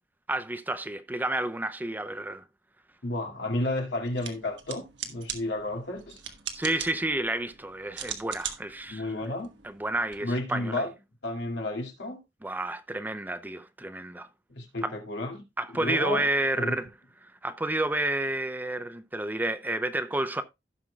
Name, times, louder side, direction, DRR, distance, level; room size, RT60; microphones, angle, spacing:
voice 1, 0.3-2.4 6.5-9.0 9.8-10.9 12.4-14.3 14.8-14.9 15.6-16.9 17.4-20.4, right 2 dB, 10° right, 0.5 m, -30 dB
voice 2, 3.0-6.2 8.9-9.5 10.2-10.9 11.2-12.2 14.5-15.4 15.7-16.3 16.6-16.7, left 1 dB, 75° left, 2.4 m, -32 dB
sound 1, 4.1-10.2, right 9 dB, 85° right, 1.3 m, -41 dB
16.5 x 5.7 x 2.3 m
head